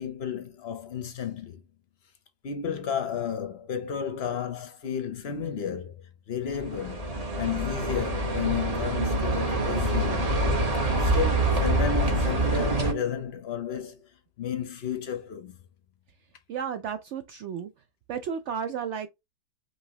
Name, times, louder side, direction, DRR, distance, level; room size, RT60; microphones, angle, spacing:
voice 1, 0.0-1.6 2.4-6.0 6.3-7.1 7.4-10.3 11.0-14.0 14.4-15.5, left 7 dB, 55° left, 0.7 m, -32 dB
sound 1, 6.5-12.9, right 1 dB, 25° right, 1.0 m, -26 dB
voice 2, 16.5-17.7 18.1-19.1, right 7 dB, 90° right, 0.6 m, -33 dB
5.4 x 3.0 x 2.8 m
omnidirectional pair, 1.8 m